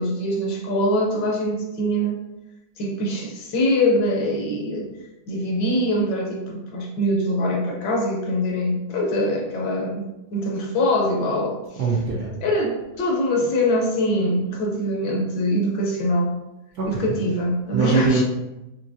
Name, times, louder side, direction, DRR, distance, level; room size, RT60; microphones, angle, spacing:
voice 1, 0.0-2.2 2.8-4.9 5.3-11.6 12.4-16.4 16.9-18.2, left 1 dB, 65° left, 0 dB, 1.3 m, -23 dB
voice 2, 11.8-12.3 16.8-17.1 17.7-18.2, right 4 dB, 70° right, -4 dB, 0.9 m, -22 dB
5.9 x 2.7 x 2.7 m, 0.97 s
omnidirectional pair, 2.3 m